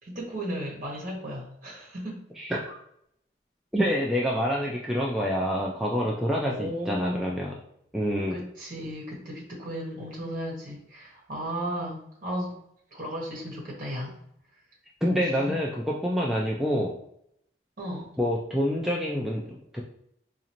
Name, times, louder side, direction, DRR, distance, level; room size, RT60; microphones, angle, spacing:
voice 1, 0.0-2.2 6.4-7.3 8.3-12.6 12.9-14.2 15.3-15.5 17.8-18.1, equal, 45° right, -4 dB, 1.3 m, -35 dB
voice 2, 2.4-2.8 3.7-7.5 7.9-8.4 15.0-16.9 18.2-19.8, equal, ahead, -4 dB, 0.3 m, -27 dB
4.0 x 2.5 x 2.9 m, 0.72 s
head